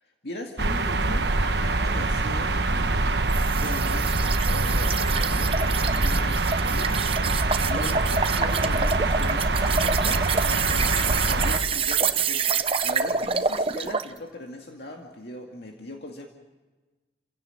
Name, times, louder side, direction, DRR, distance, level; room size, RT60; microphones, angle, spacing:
voice 1, 0.0-16.3, left 2 dB, 65° left, 1 dB, 2.2 m, -39 dB
sound 1, 0.6-11.6, right 2 dB, 70° right, 1.2 m, -24 dB
sound 2, 3.3-14.1, right 5 dB, 30° right, 0.8 m, -27 dB
29.5 x 16.5 x 5.8 m, 1.2 s
head